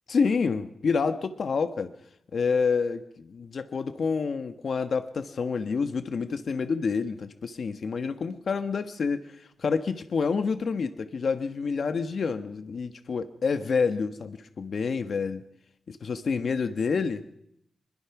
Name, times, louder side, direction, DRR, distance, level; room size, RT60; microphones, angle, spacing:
voice 1, 0.1-1.9 2.3-15.4 15.9-17.2, left 5 dB, 60° left, 9 dB, 1.3 m, -28 dB
25.5 x 22.0 x 6.0 m, 0.74 s
wide cardioid pair, 100°, 0 cm